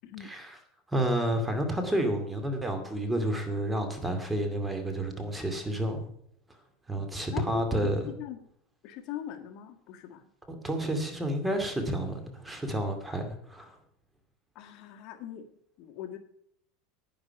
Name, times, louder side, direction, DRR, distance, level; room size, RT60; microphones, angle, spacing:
voice 1, 0.2-0.6 0.9-6.1 6.9-8.1 10.6-13.8, right 1 dB, 10° right, 6 dB, 2.4 m, -30 dB
voice 2, 7.3-8.4 8.8-10.3 14.5-15.5 15.8-16.2, left 9 dB, 55° left, 5 dB, 1.6 m, -40 dB
10.5 x 10.0 x 5.8 m, 0.69 s
supercardioid pair, 125°, 0 cm